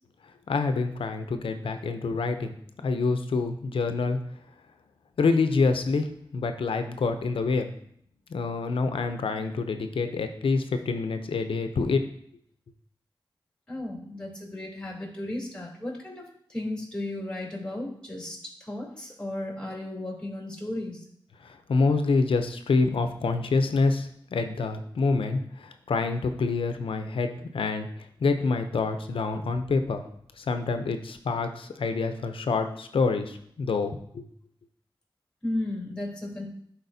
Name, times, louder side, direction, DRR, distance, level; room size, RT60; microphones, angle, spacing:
voice 1, 0.5-2.6 2.8-4.2 5.2-7.7 8.3-12.1 21.4-27.9 28.2-30.0 30.4-34.3, left 4 dB, 85° left, 8 dB, 0.6 m, -27 dB
voice 2, 13.7-16.2 16.5-21.0 35.4-36.4, left 1 dB, 10° left, -3 dB, 3.1 m, -34 dB
11.0 x 4.3 x 2.7 m, 0.67 s
cardioid pair, 45°, 9 cm